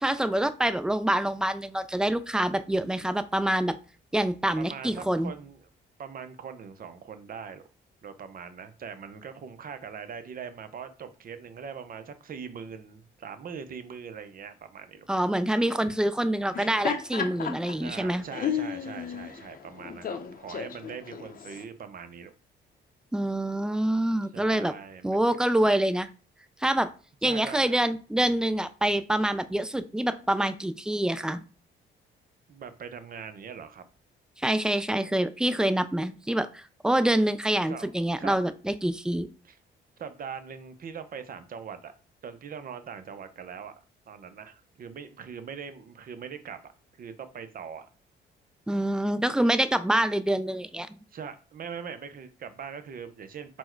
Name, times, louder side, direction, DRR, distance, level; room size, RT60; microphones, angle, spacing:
voice 1, 0.0-3.8 4.1-5.3 15.1-18.2 23.1-24.7 25.0-26.1 26.6-26.9 27.2-31.5 34.4-39.3 48.7-51.0, right 1 dB, 5° right, 12 dB, 0.3 m, -26 dB
voice 2, 4.6-5.6 6.0-7.7 8.0-15.1 17.8-22.3 24.3-25.2 27.2-27.7 32.5-33.9 37.7-37.9 38.2-38.4 39.4-39.6 40.0-41.9 42.2-43.7 44.1-46.7 47.0-47.9 51.1-53.6, right 6 dB, 45° right, 9 dB, 0.6 m, -41 dB
Laughter, 16.4-21.6, left 7 dB, 45° left, 0.7 m, -34 dB
4.3 x 2.2 x 4.4 m, 0.35 s
cardioid pair, 90°, 20 cm